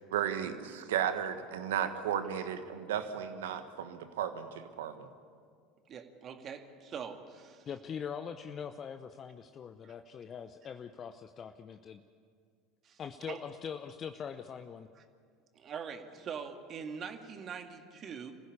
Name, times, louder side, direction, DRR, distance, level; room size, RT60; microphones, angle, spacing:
voice 1, 0.1-5.1, right 9 dB, 75° right, 9 dB, 1.5 m, -34 dB
voice 2, 5.9-7.7 9.8-9.9 12.8-13.0 13.3-13.4 15.0-15.1 15.5-18.3, right 6 dB, 40° right, 6 dB, 2.1 m, -43 dB
voice 3, 7.7-12.0 13.0-14.9, left 7 dB, 35° left, 8 dB, 0.8 m, -42 dB
26.5 x 15.5 x 8.5 m, 2.1 s
hypercardioid pair, 75°, 0 cm